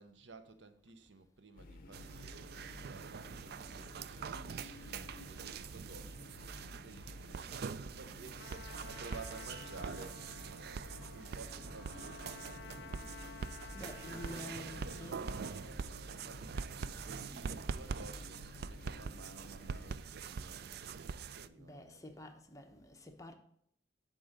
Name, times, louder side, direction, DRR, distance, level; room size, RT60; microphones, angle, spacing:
voice 1, 0.0-6.4 6.8-13.2 13.8-22.4, right 3 dB, 75° right, 0.8 m, -54 dB
sound 1, 1.6-19.9, left 2 dB, 55° left, 0.7 m, -53 dB
sound 2, 1.9-21.5, right 6 dB, 60° right, 0.4 m, -44 dB
Trumpet, 8.4-15.7, left 6 dB, 90° left, 0.4 m, -54 dB
voice 2, 13.7-15.3 21.6-23.3, left 1 dB, 20° left, 0.9 m, -49 dB
8.8 x 3.8 x 6.6 m
head